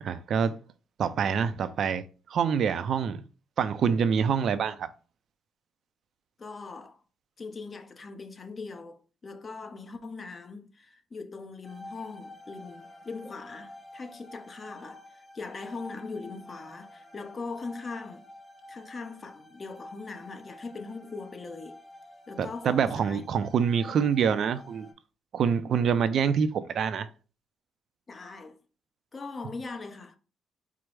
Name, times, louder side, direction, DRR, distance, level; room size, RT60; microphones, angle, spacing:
voice 1, 0.0-0.6 1.0-3.2 3.6-4.9 22.4-24.9 25.3-27.1, right 7 dB, 60° right, 0.4 m, -26 dB
voice 2, 6.4-7.0 7.4-18.3 18.7-21.8 22.3-23.3 28.1-28.6 29.1-30.2, left 4 dB, 35° left, 0.7 m, -41 dB
sound 1, 11.6-24.9, left 1 dB, 15° left, 1.3 m, -49 dB
4.6 x 2.0 x 4.6 m
cardioid pair, 90°, 0 cm